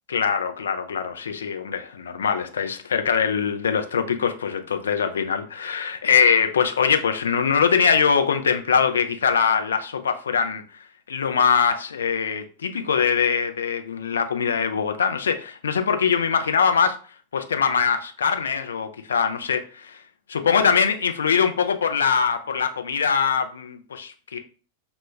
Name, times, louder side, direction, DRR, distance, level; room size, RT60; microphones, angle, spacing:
voice 1, 0.1-10.6 11.1-17.0 17.3-20.0 20.3-24.4, left 6 dB, 70° left, 7 dB, 0.3 m, -22 dB
2.1 x 2.0 x 3.1 m, 0.38 s
figure-of-eight pair, 90°, 0 cm